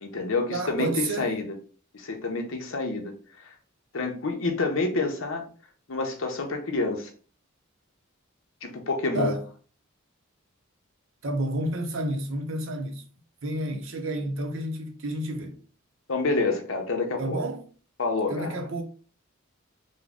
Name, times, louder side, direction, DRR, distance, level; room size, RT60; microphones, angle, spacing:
voice 1, 0.0-1.5 1.9-3.1 3.4-3.5 3.9-5.4 5.9-7.1 8.6-9.4 13.7-13.8 16.1-17.4 18.0-18.6, left 3 dB, 65° left, 0.7 m, -28 dB
voice 2, 0.5-1.3 9.1-9.4 11.2-13.0 13.4-15.6 17.2-17.6 18.3-18.8, right 1 dB, 65° right, 0.6 m, -30 dB
3.6 x 2.1 x 3.5 m
head